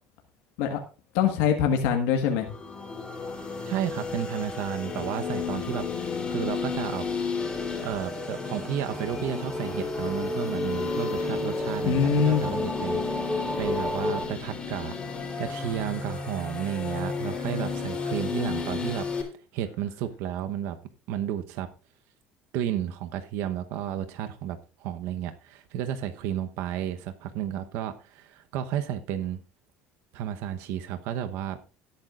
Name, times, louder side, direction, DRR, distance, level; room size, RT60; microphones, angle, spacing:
voice 1, 1.1-2.5 11.8-12.5, left 7 dB, 85° left, 3 dB, 1.5 m, -23 dB
sound 1, 2.3-19.2, left 5 dB, 20° left, 3.5 m, -33 dB
voice 2, 3.7-7.1 7.8-15.0 15.4-19.1 19.5-20.8 21.1-21.7 22.5-29.4 30.1-31.6, right 10 dB, 75° right, 8 dB, 1.0 m, -32 dB
sound 2, 7.4-14.3, left 1 dB, ahead, 1.5 m, -32 dB
17.5 x 8.7 x 2.5 m, 0.34 s
cardioid pair, 125°, 5 cm